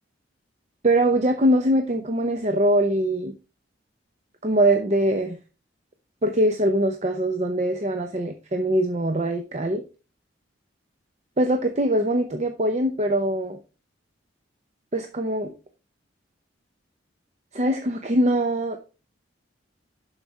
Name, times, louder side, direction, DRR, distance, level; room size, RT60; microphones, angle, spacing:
voice 1, 0.8-3.3 4.4-5.4 6.2-9.8 11.4-13.6 14.9-15.5 17.5-18.8, right 1 dB, 35° right, 5 dB, 0.7 m, -22 dB
11.5 x 4.9 x 3.7 m, 0.34 s
head